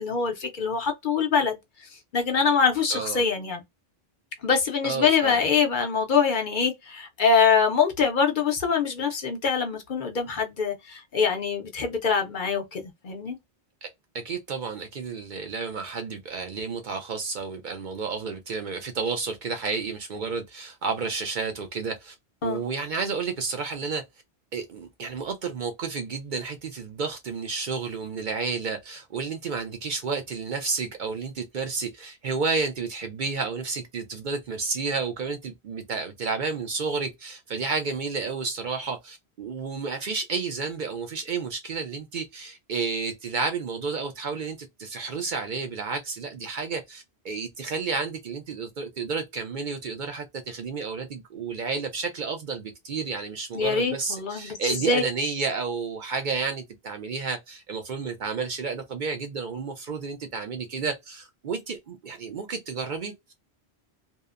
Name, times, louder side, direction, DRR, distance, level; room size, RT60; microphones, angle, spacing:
voice 1, 0.0-1.6 2.1-3.6 4.4-13.4 22.4-22.6 53.5-55.1, left 5 dB, 55° left, 0.7 m, -24 dB
voice 2, 2.9-3.2 4.8-5.5 13.8-13.9 14.1-22.1 22.4-24.0 24.5-63.1, right 4 dB, 55° right, 0.6 m, -31 dB
2.7 x 2.1 x 2.3 m
omnidirectional pair, 1.1 m